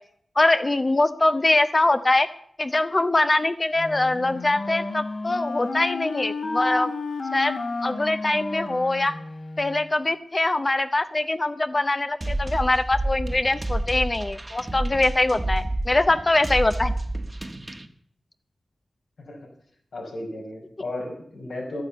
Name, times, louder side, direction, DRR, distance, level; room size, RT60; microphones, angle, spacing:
voice 1, 0.4-2.3 2.6-6.9 7.3-7.5 7.8-9.2 9.6-16.9, left 2 dB, 30° left, 10 dB, 0.6 m, -23 dB
Wind instrument woodwind instrument, 3.8-9.9, left 3 dB, 60° left, 2.1 m, -32 dB
sound 1, 12.2-17.9, right 1 dB, 25° right, 1.1 m, -29 dB
voice 2, 19.9-21.8, left 1 dB, 85° left, 0 dB, 5.0 m, -34 dB
12.0 x 10.0 x 8.1 m, 0.65 s
wide cardioid pair, 105°, 0 cm